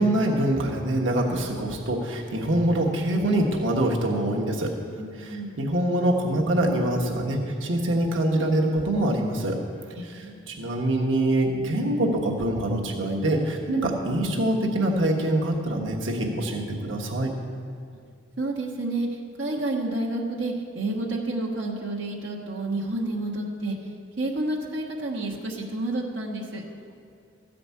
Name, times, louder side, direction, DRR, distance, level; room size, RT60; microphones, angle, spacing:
voice 1, 0.0-4.7 5.2-9.6 10.1-17.3, right 1 dB, 90° right, -1 dB, 1.4 m, -24 dB
voice 2, 5.0-5.6 10.0-10.5 18.4-23.8 24.2-26.6, right 2 dB, 70° right, -3 dB, 1.3 m, -30 dB
14.0 x 5.1 x 8.3 m, 2.3 s
head